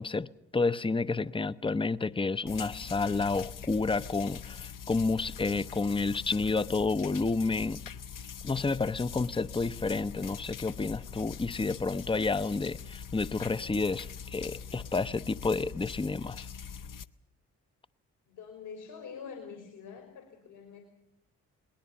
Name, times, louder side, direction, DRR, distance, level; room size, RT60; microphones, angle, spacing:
voice 1, 0.0-7.8 8.4-16.5, left 3 dB, 15° left, 0.8 m, -30 dB
sound 1, 2.5-17.1, left 7 dB, 55° left, 1.0 m, -43 dB
voice 2, 18.3-20.8, left 6 dB, 75° left, 3.5 m, -45 dB
22.0 x 19.5 x 7.3 m
hypercardioid pair, 40°, 39 cm